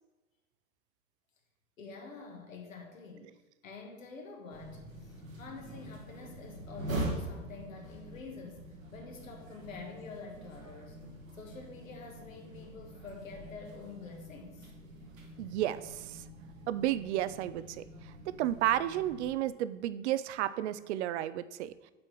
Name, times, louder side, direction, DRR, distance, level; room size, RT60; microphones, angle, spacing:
voice 1, 1.8-3.3 3.6-8.6 8.9-11.0 11.3-14.7, left 4 dB, 80° left, 2 dB, 1.6 m, -47 dB
sound 1, 4.5-19.3, right 1 dB, 85° right, 1.7 m, -44 dB
voice 2, 15.4-16.2 16.7-21.7, right 13 dB, 60° right, 15 dB, 0.5 m, -32 dB
6.2 x 4.4 x 6.0 m, 1.1 s
figure-of-eight pair, 85°, 39 cm